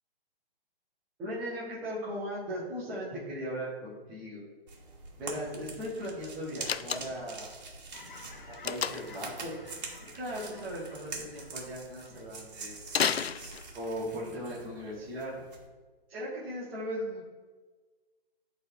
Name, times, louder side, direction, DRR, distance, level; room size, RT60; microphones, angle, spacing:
voice 1, 1.2-4.4 5.2-7.5 8.6-9.6 10.1-12.7 13.7-15.3 16.1-17.2, equal, 5° right, -8 dB, 0.5 m, -38 dB
sound 1, 4.7-15.7, right 3 dB, 45° right, 2.0 m, -45 dB
Slam, 6.6-7.4 8.6-9.2 12.9-14.0, left 7 dB, 90° left, 0.5 m, -31 dB
Fowl / Chirp tweet, 7.9-13.7 14.2-14.4, left 4 dB, 55° left, 1.4 m, -54 dB
10.5 x 4.0 x 4.4 m, 1.4 s
figure-of-eight pair, 140°, 30 cm